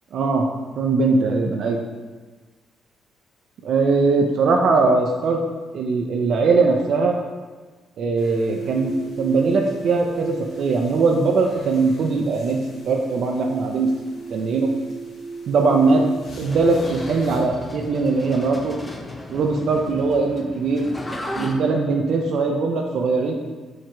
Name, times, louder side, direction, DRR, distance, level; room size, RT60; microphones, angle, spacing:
voice 1, 0.1-0.5 0.8-1.8 3.6-5.4 5.7-7.2 8.0-13.9 14.3-14.7 15.5-16.0 16.4-18.7 19.3-20.8 21.3-23.4, right 4 dB, 70° right, 2 dB, 0.4 m, -20 dB
sound 1, 8.2-17.4, right 4 dB, 70° left, 1.2 m, -37 dB
sound 2, 16.3-21.5, left 1 dB, 15° left, 0.5 m, -35 dB
4.7 x 2.4 x 4.3 m, 1.4 s
cardioid pair, 90°, 0 cm